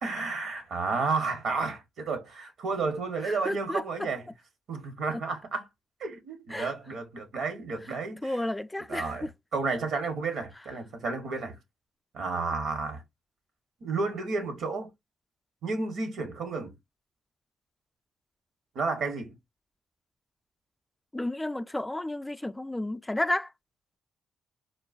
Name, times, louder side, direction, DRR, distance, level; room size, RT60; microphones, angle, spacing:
voice 1, 0.0-4.3 4.7-5.7 6.0-8.4 8.9-11.6 12.1-13.0 13.8-14.9 15.6-16.8 18.7-19.4, right 4 dB, 75° right, 0.9 m, -32 dB
voice 2, 3.2-3.8 6.5-6.7 8.2-9.3 21.1-23.5, left 1 dB, 15° left, 0.4 m, -31 dB
3.8 x 2.2 x 2.3 m
supercardioid pair, 60°, 0 cm